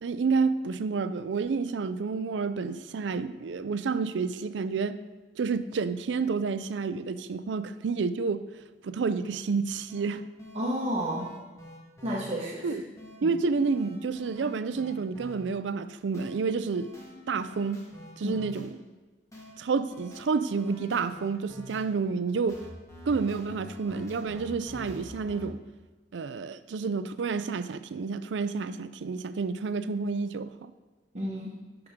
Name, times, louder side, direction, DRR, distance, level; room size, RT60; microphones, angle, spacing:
voice 1, 0.0-5.0 5.4-8.4 8.8-10.2 12.6-12.9 13.2-16.9 17.3-17.9 18.2-18.8 19.6-22.6 23.1-25.6 26.1-30.7, right 4 dB, 75° right, 13 dB, 0.4 m, -29 dB
sound 1, 9.9-10.0 10.4-12.2 13.0-13.2 13.6-15.3 16.1-16.3 16.7-18.7 19.3-19.5 19.9-21.8 22.5-25.5, left 1 dB, 20° left, 1.7 m, -46 dB
voice 2, 10.5-11.3 12.0-12.7 13.2-13.3 18.2-18.4 31.1-31.6, equal, 40° right, -4 dB, 1.2 m, -31 dB
11.0 x 6.0 x 3.6 m, 1.2 s
head